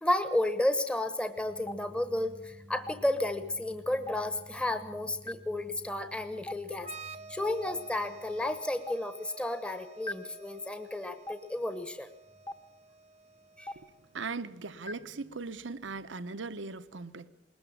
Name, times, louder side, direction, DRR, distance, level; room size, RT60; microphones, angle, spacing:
voice 1, 0.0-12.1 13.6-13.7, left 1 dB, 5° left, 10 dB, 1.0 m, -32 dB
Stream, 1.7-1.8 2.9-3.0 4.1-4.2 5.3-5.4 6.5-6.6 7.7-7.8 8.9-9.0 10.1-10.2 11.3-11.4 12.5-12.6 13.7-13.8 14.9-15.0, left 1 dB, 25° left, 1.1 m, -36 dB
sound 1, 6.8-14.3, right 3 dB, 35° right, 0.8 m, -50 dB
voice 2, 14.1-17.3, right 4 dB, 85° right, 12 dB, 0.9 m, -39 dB
21.0 x 20.0 x 7.4 m, 0.89 s
head